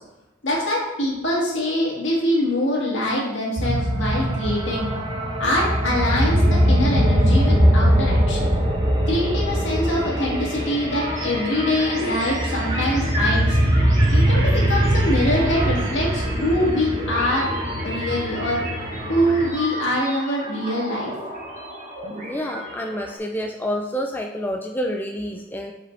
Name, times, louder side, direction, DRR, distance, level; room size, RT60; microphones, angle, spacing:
voice 1, 0.4-4.9 5.4-8.5 9.1-13.6 14.1-17.5 17.8-18.6 19.0-21.1, left 1 dB, 65° left, -3 dB, 1.9 m, -24 dB
sound 1, 3.6-19.5, equal, 20° right, 0.9 m, -21 dB
sound 2, 10.9-23.2, right 1 dB, 40° right, 1.6 m, -35 dB
sound 3, 10.9-11.0 11.3-15.3 17.0-17.1, equal, 70° right, 2.0 m, -34 dB
voice 2, 22.2-25.7, equal, 10° left, 2 dB, 0.3 m, -28 dB
7.0 x 5.0 x 3.2 m, 0.99 s
head